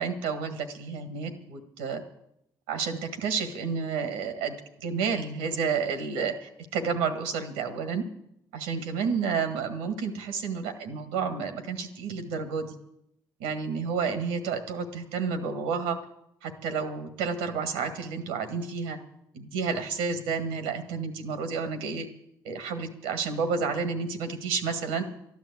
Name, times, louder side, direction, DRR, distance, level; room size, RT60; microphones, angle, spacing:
voice 1, 0.0-2.0 2.7-8.0 8.5-12.8 13.4-16.0 16.4-19.0 19.3-22.1 22.4-25.0, right 5 dB, 90° right, 8 dB, 1.7 m, -30 dB
12.5 x 10.5 x 8.4 m, 0.78 s
supercardioid pair, 60°, 9 cm